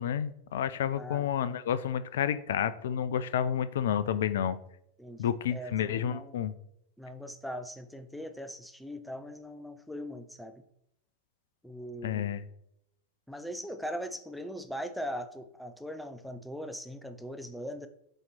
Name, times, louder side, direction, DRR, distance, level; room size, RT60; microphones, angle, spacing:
voice 1, 0.0-4.6 5.2-6.5 12.0-12.4, left 9 dB, 60° left, 14 dB, 0.4 m, -30 dB
voice 2, 0.9-1.4 5.0-6.4 7.0-10.5 11.6-12.3 13.3-17.9, equal, ahead, 9 dB, 0.5 m, -40 dB
7.7 x 3.0 x 4.2 m, 0.76 s
figure-of-eight pair, 90°, 0 cm